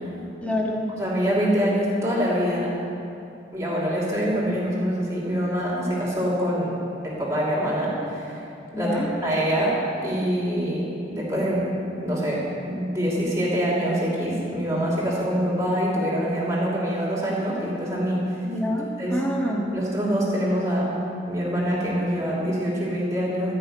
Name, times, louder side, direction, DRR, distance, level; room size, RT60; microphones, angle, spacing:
voice 1, 0.4-0.9 8.7-9.1 18.4-19.7, equal, 5° left, -2 dB, 1.6 m, -27 dB
voice 2, 1.0-2.7 3.5-6.7 7.0-8.4 8.7-11.7 12.0-18.2 19.0-19.2 19.7-20.9 21.3-23.5, equal, 15° right, -5 dB, 2.8 m, -25 dB
13.5 x 5.7 x 9.0 m, 2.7 s
head